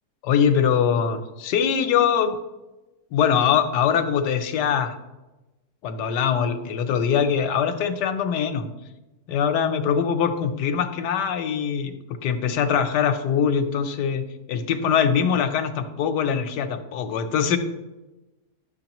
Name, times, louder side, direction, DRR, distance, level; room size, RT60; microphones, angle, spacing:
voice 1, 0.2-2.3 3.1-4.9 5.8-8.7 9.3-11.9 12.2-17.6, left 7 dB, 90° left, 8 dB, 1.3 m, -22 dB
9.9 x 6.6 x 3.0 m, 1.1 s
omnidirectional pair, 1.7 m